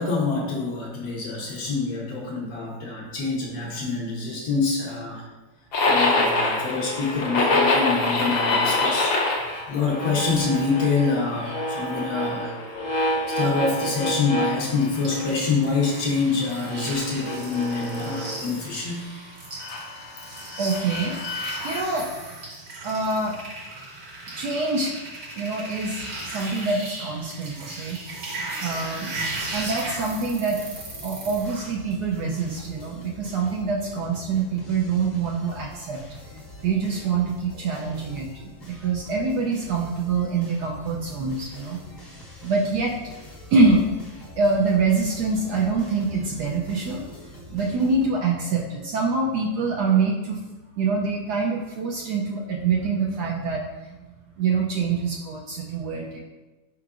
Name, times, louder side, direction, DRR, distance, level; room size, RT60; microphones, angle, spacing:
voice 1, 0.0-5.2 5.9-9.2 9.7-12.6 13.4-19.1, left 4 dB, 65° left, -2 dB, 1.1 m, -26 dB
sound 1, 5.7-15.5 15.8-18.4 19.6-21.8, left 2 dB, 80° left, 1.5 m, -26 dB
sound 2, 15.0-31.7, right 2 dB, 55° right, 1.4 m, -37 dB
voice 2, 20.6-21.2 21.6-22.1 22.8-23.4 24.4-24.9 25.4-28.0 28.6-29.1 29.5-30.6 31.0-36.0 36.6-38.3 38.7-41.8 42.4-43.0 43.5-43.8 44.4-47.0 47.5-50.4 50.8-53.6 54.4-56.2, right 4 dB, 70° right, -1 dB, 1.0 m, -25 dB
sound 3, 29.1-48.1, left 1 dB, 40° left, 0.7 m, -44 dB
4.8 x 4.5 x 2.4 m, 1.2 s
omnidirectional pair, 2.1 m